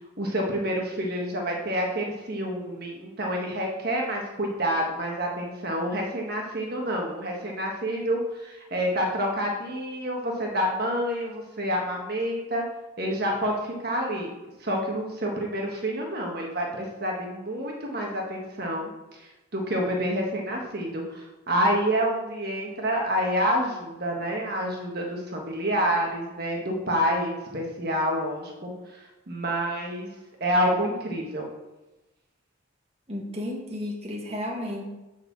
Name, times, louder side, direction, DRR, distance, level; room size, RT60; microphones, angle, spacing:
voice 1, 0.2-12.6 13.0-14.3 14.6-18.9 19.5-28.7 29.3-30.1 30.4-31.5, equal, 50° right, -1 dB, 1.4 m, -28 dB
voice 2, 33.1-34.9, left 1 dB, 30° right, -1 dB, 1.5 m, -33 dB
7.1 x 5.5 x 7.2 m, 1.1 s
head